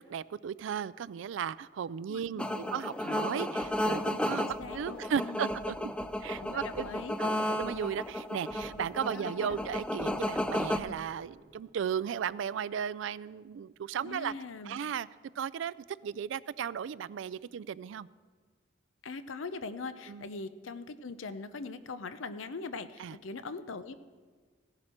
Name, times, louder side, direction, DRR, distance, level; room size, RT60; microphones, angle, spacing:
voice 1, 0.0-5.9 6.2-6.9 7.2-14.3 14.7-15.1 15.4-18.1 20.1-20.2 23.0-23.1, right 8 dB, 80° right, 19 dB, 0.3 m, -35 dB
voice 2, 2.1-2.8 4.3-5.6 6.4-7.6 9.1-9.7 14.0-14.8 19.0-23.9, left 3 dB, 90° left, 12 dB, 0.7 m, -42 dB
sound 1, 2.4-10.8, left 1 dB, 5° left, 0.3 m, -33 dB
sound 2, 3.6-5.0 5.5-9.0 9.5-11.6, equal, 40° left, 3.5 m, -54 dB
16.0 x 10.5 x 4.4 m, 1.5 s
head